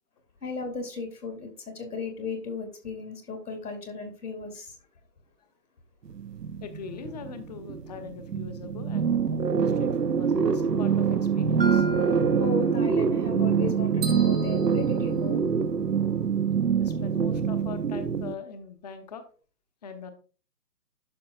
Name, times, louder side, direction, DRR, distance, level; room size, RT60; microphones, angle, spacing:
voice 1, 0.4-4.8 12.4-15.4, left 3 dB, 70° left, 3.0 m, -35 dB
sound 1, 6.1-18.3, right 6 dB, 85° right, 0.9 m, -25 dB
voice 2, 6.6-9.2 9.6-11.9 16.8-19.2 19.8-20.1, left 5 dB, 25° left, 0.9 m, -42 dB
Mallet percussion, 11.6-15.6, right 3 dB, 40° right, 0.4 m, -33 dB
sound 2, 14.0-15.9, right 6 dB, 15° right, 0.8 m, -40 dB
11.5 x 6.0 x 2.4 m
figure-of-eight pair, 140°, 48 cm